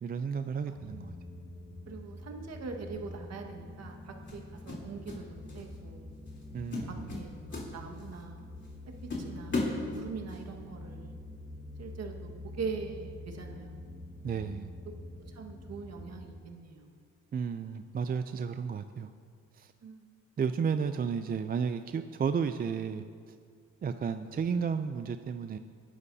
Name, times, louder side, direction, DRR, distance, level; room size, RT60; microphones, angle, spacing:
voice 1, 0.0-1.1 6.5-7.2 14.2-14.7 17.3-19.1 19.5-19.7 20.4-23.4 23.8-25.6, right 6 dB, 30° right, 9 dB, 0.4 m, -33 dB
sound 1, 0.7-16.3, left 1 dB, 15° left, 1.6 m, -46 dB
voice 2, 1.9-6.1 6.8-8.5 9.2-11.2 11.8-13.9 15.3-16.9 19.8-20.1, right 4 dB, 60° right, 3 dB, 1.6 m, -42 dB
sound 2, 2.9-3.2 4.3-5.2 5.5-5.8 6.3-6.4 6.7-8.2 8.6-8.7 9.1-10.4, left 3 dB, 40° left, 3.4 m, -36 dB
20.5 x 11.0 x 2.8 m, 2.1 s
cardioid pair, 90°, 30 cm